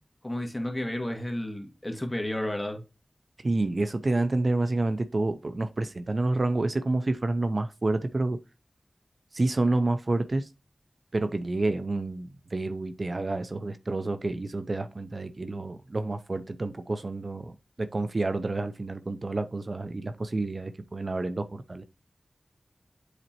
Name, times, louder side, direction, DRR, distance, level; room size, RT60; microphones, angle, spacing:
voice 1, 0.2-2.8, left 1 dB, 20° left, 1.7 m, -32 dB
voice 2, 3.4-8.4 9.3-10.5 11.1-21.8, right 2 dB, 55° right, 0.6 m, -29 dB
8.0 x 4.3 x 2.9 m
cardioid pair, 50°, 0 cm